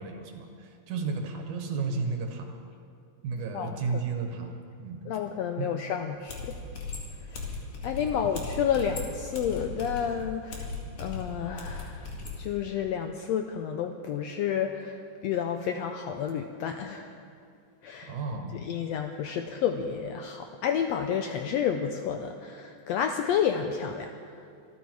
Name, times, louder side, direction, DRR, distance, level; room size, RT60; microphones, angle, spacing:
voice 1, 0.0-2.6 3.2-4.5 4.8-5.1 5.6-5.7 8.1-8.3 18.1-18.5, right 4 dB, 75° right, 4 dB, 2.8 m, -33 dB
voice 2, 3.5-4.0 5.0-6.6 7.3-7.5 7.8-10.7 11.0-12.1 12.4-17.1 17.8-18.1 18.5-24.5, left 8 dB, 80° left, 6 dB, 1.5 m, -30 dB
sound 1, 6.0-6.1 6.3-12.4, left 4 dB, 50° left, 2.9 m, -37 dB
25.5 x 9.9 x 4.7 m, 2.3 s
omnidirectional pair, 3.6 m